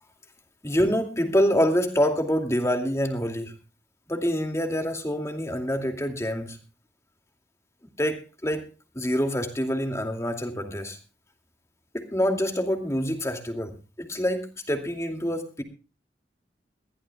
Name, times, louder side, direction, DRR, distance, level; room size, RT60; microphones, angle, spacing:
voice 1, 0.6-3.5 4.1-6.6 8.0-8.6 8.9-11.0 11.9-13.7 14.0-15.6, equal, 15° left, 5 dB, 2.4 m, -26 dB
22.0 x 15.0 x 2.3 m, 0.32 s
head